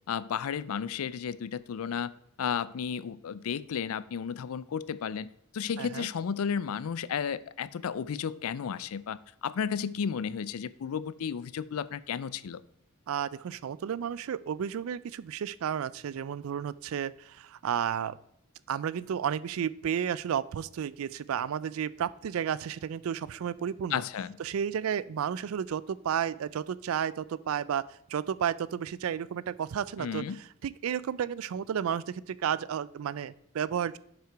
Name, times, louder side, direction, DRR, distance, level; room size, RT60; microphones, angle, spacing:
voice 1, 0.1-2.1 2.4-12.6 23.9-24.3 30.0-30.4, left 7 dB, 85° left, 17 dB, 0.4 m, -33 dB
voice 2, 5.8-6.1 13.1-18.2 18.7-24.0 24.4-27.8 28.1-30.2 30.6-34.0, right 8 dB, 70° right, 19 dB, 0.3 m, -32 dB
7.5 x 5.8 x 4.5 m, 0.72 s
head